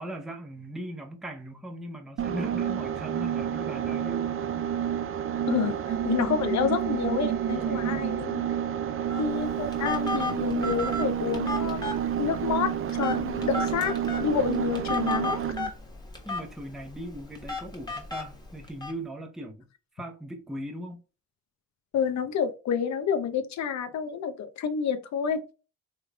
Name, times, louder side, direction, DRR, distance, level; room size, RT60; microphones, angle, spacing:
voice 1, 0.0-4.7 7.5-8.2 16.2-19.7 19.9-21.0, right 1 dB, ahead, 0.7 m, -39 dB
sound 1, 2.2-15.7, right 9 dB, 45° right, 0.5 m, -29 dB
voice 2, 5.5-8.5 9.2-11.9 12.2-13.9 14.2-15.4 21.9-25.4, left 7 dB, 65° left, 0.8 m, -29 dB
Telephone, 9.1-18.9, left 3 dB, 15° left, 1.3 m, -35 dB
3.4 x 3.2 x 2.3 m
cardioid pair, 90°, 30 cm